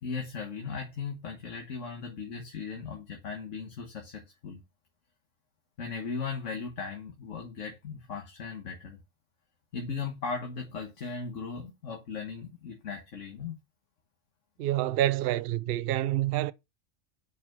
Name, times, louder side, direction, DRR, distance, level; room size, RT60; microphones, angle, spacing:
voice 1, 0.0-4.6 5.8-9.0 9.7-13.6, left 5 dB, 65° left, 1.6 m, -37 dB
voice 2, 14.6-16.5, right 13 dB, 65° right, 0.6 m, -27 dB
5.8 x 4.5 x 5.9 m
omnidirectional pair, 1.4 m